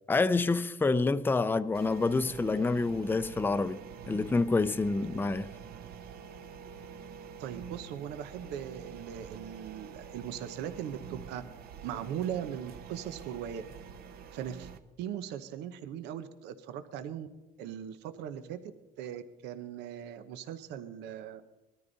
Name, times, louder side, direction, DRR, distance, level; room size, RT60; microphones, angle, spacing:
voice 1, 0.1-3.8 4.1-5.5, left 3 dB, 10° left, 0.5 m, -27 dB
sound 1, 1.7-14.8, right 7 dB, 65° right, 1.1 m, -47 dB
voice 2, 7.4-11.4 11.8-13.6 14.3-14.7 15.0-17.3 17.6-18.6 19.0-21.4, right 9 dB, 90° right, 0.9 m, -39 dB
20.5 x 13.5 x 4.0 m
cardioid pair, 110°, 17 cm